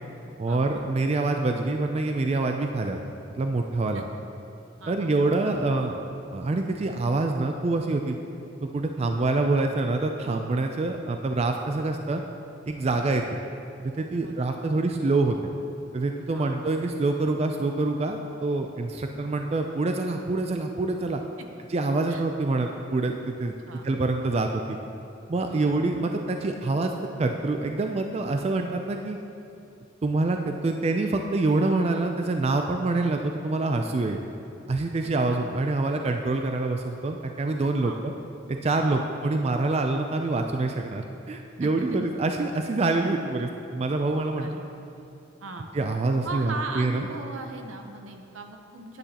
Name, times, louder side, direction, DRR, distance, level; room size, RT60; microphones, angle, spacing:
voice 1, 0.4-3.0 3.3-4.0 4.9-8.2 8.6-12.2 12.7-13.4 13.8-15.4 15.9-21.2 21.7-23.5 23.8-24.8 25.3-26.9 27.2-29.2 30.0-34.2 34.7-38.1 38.5-44.5 45.7-47.1, right 2 dB, 30° right, 4 dB, 0.3 m, -26 dB
voice 2, 4.8-5.3 12.9-13.1 14.2-14.5 16.3-16.6 21.4-21.5 22.1-22.3 23.7-23.9 25.5-25.8 35.2-35.5 37.8-38.0 38.9-39.1 41.6-41.7 44.4-44.6 44.9-45.1 45.4-45.7 46.2-49.0, right 3 dB, 75° right, 4 dB, 0.8 m, -38 dB
9.8 x 9.4 x 2.9 m, 2.7 s
head